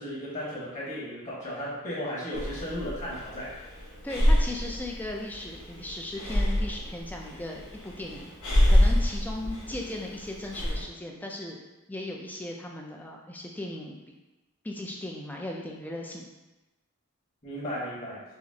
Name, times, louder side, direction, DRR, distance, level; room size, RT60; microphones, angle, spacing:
voice 1, 0.0-3.6 17.4-18.2, equal, 35° left, -8 dB, 1.3 m, -35 dB
Breathing, 2.3-10.8, left 1 dB, 85° left, 1.2 m, -27 dB
voice 2, 4.0-8.3 8.7-11.6 11.9-13.9 14.6-16.3, left 1 dB, 10° left, 0 dB, 0.3 m, -37 dB
5.6 x 2.0 x 2.7 m, 1.1 s
head